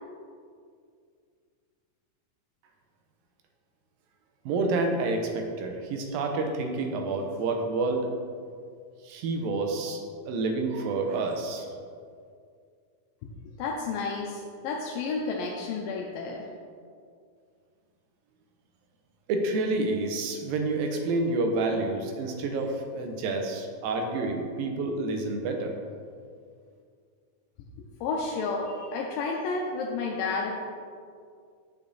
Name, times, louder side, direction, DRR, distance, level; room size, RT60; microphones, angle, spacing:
voice 1, 4.5-8.1 9.0-11.7 19.3-25.7, right 3 dB, 85° right, 3 dB, 2.6 m, -29 dB
voice 2, 13.6-16.4 28.0-30.5, left 4 dB, 80° left, -1 dB, 2.4 m, -31 dB
8.7 x 6.4 x 4.0 m, 2.2 s
omnidirectional pair, 4.0 m